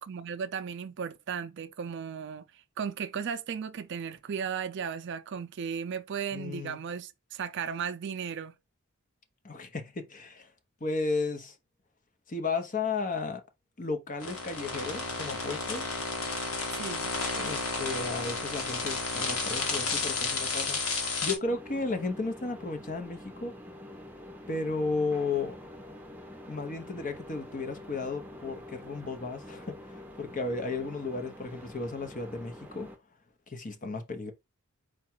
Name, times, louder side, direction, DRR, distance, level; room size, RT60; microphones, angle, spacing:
voice 1, 0.1-2.5 2.8-8.5 16.7-17.1, right 7 dB, 55° right, 0.4 m, -35 dB
voice 2, 6.3-6.8 9.4-10.5 10.8-11.6 12.3-13.4 13.8-15.9 17.4-20.8 21.2-23.5 24.5-25.6 26.5-32.9 33.5-34.3, left 3 dB, 40° left, 0.8 m, -34 dB
sound 1, 14.2-21.4, left 3 dB, 85° left, 1.5 m, -32 dB
sound 2, 21.4-33.0, left 1 dB, 10° right, 0.7 m, -46 dB
4.7 x 2.3 x 4.4 m
head